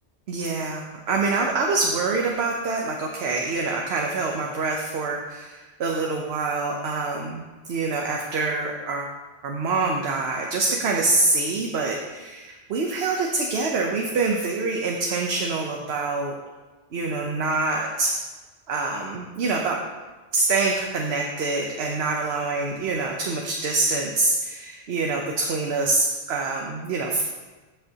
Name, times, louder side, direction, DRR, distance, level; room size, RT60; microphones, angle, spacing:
voice 1, 0.3-0.8 1.1-9.1 9.4-16.3 16.9-18.1 18.7-19.8 20.3-27.2, right 3 dB, 70° right, 1 dB, 1.0 m, -25 dB
14.0 x 5.5 x 2.8 m, 1.3 s
omnidirectional pair, 1.1 m